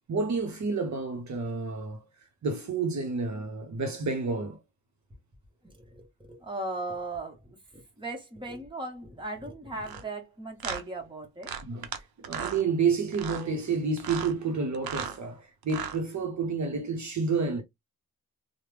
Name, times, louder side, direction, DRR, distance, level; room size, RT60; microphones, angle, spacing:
voice 1, 0.1-2.1 2.4-4.6 11.7-17.6, right 4 dB, 55° right, 0.8 m, -30 dB
voice 2, 5.6-11.5, right 2 dB, 15° right, 1.0 m, -38 dB
sound 1, 9.8-10.0 10.6-10.8 11.4-12.0 12.2-12.6 13.1-13.4 14.0-14.3 14.7-15.2 15.6-16.0, right 8 dB, 85° right, 0.6 m, -36 dB
3.2 x 2.1 x 3.2 m
wide cardioid pair, 140°, 35 cm